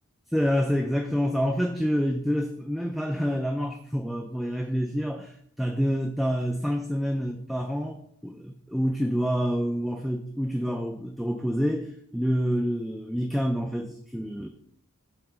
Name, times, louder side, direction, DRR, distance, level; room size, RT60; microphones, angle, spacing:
voice 1, 0.3-14.5, equal, ahead, 4 dB, 0.3 m, -27 dB
7.2 x 2.9 x 5.6 m, 0.66 s
head